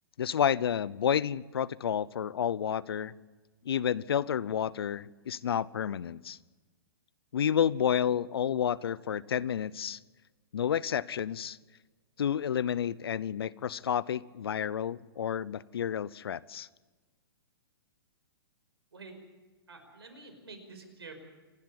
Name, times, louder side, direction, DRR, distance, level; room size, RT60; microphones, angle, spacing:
voice 1, 0.2-3.1 3.6-6.4 7.3-10.0 10.5-11.6 12.2-16.7, left 9 dB, 75° left, 21 dB, 0.7 m, -30 dB
voice 2, 19.7-21.2, right 3 dB, 85° right, 5 dB, 5.3 m, -48 dB
27.0 x 12.0 x 9.9 m, 1.3 s
hypercardioid pair, 125°, 13 cm